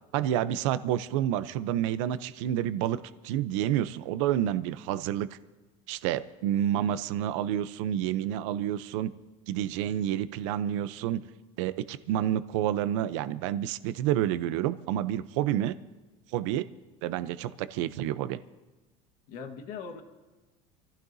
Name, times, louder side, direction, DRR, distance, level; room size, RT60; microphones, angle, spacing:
voice 1, 0.1-5.3 5.9-9.1 9.5-11.2 11.6-15.8 16.3-16.6 17.0-18.4, right 11 dB, 90° right, 13 dB, 0.7 m, -29 dB
voice 2, 6.6-7.0 16.5-16.8 19.3-20.0, left 6 dB, 55° left, 6 dB, 1.5 m, -42 dB
27.5 x 15.5 x 2.7 m, 1.2 s
cardioid pair, 175°, 15 cm